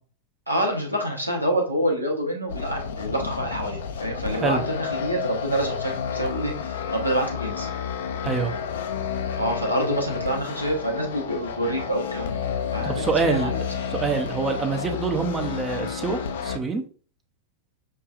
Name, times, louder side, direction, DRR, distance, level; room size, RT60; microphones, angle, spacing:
voice 1, 0.5-7.7 9.4-12.4 12.7-13.6, right 1 dB, 85° right, 1 dB, 1.1 m, -27 dB
sound 1, 2.5-16.6, left 7 dB, 60° left, 0.5 m, -31 dB
voice 2, 8.2-8.5 12.8-13.5 13.9-16.8, right 5 dB, 20° right, 5 dB, 0.6 m, -26 dB
6.6 x 2.4 x 2.4 m, 0.40 s
figure-of-eight pair, 90°, 0 cm